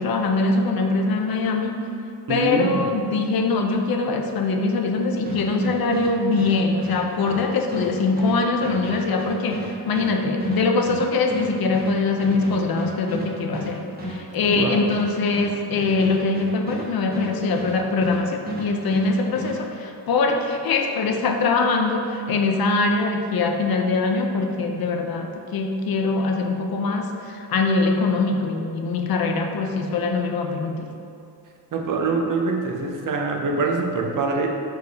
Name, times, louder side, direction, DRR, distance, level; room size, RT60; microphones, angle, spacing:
voice 1, 0.0-1.8 2.3-31.0, left 3 dB, 55° left, 4 dB, 0.6 m, -23 dB
voice 2, 2.3-2.8 14.5-15.0 31.7-34.5, right 3 dB, 50° right, 2 dB, 0.7 m, -24 dB
sound 1, 5.3-18.2 18.5-19.6, right 1 dB, 20° right, 1.2 m, -32 dB
6.5 x 4.7 x 4.1 m, 2.6 s
wide cardioid pair, 170°, 42 cm